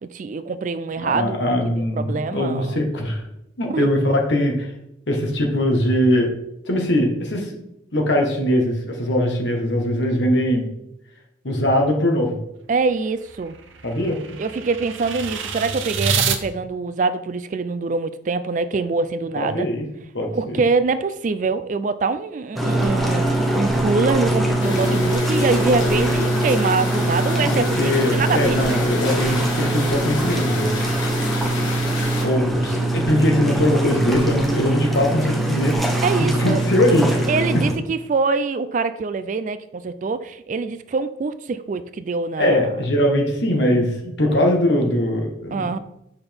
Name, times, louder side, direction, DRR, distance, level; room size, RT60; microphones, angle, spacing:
voice 1, 0.0-1.4 1.6-2.8 3.7-3.9 12.7-13.6 14.4-19.7 20.3-28.6 32.0-32.1 36.0-36.6 37.3-42.7 44.3-44.4 45.5-45.8, right 4 dB, 40° right, 12 dB, 0.3 m, -24 dB
voice 2, 1.0-3.2 3.6-4.7 5.1-6.3 6.6-7.5 7.9-10.7 11.4-12.4 13.8-14.2 19.3-19.8 20.1-20.6 27.4-30.7 32.2-35.8 36.3-37.2 37.5-37.6 42.4-45.7, left 1 dB, 65° left, 1 dB, 1.4 m, -21 dB
sound 1, 12.8-16.4, right 6 dB, 80° right, 0.7 m, -27 dB
sound 2, 22.6-37.7, right 1 dB, ahead, 0.9 m, -22 dB
sound 3, 24.6-32.2, left 3 dB, 85° left, 1.7 m, -32 dB
7.8 x 5.5 x 3.5 m, 0.84 s
head